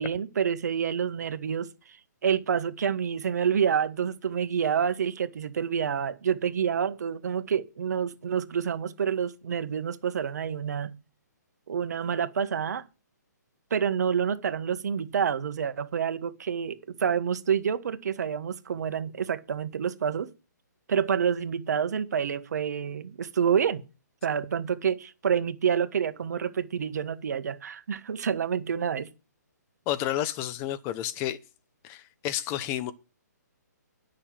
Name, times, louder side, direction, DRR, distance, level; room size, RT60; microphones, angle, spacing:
voice 1, 0.0-2.0 2.2-11.0 11.7-12.8 13.7-20.3 20.9-23.8 24.2-29.1, right 7 dB, 65° right, 1.4 m, -28 dB
voice 2, 29.9-31.4 31.8-32.9, left 12 dB, 25° left, 0.9 m, -30 dB
10.0 x 6.5 x 7.5 m
hypercardioid pair, 145°, 10 cm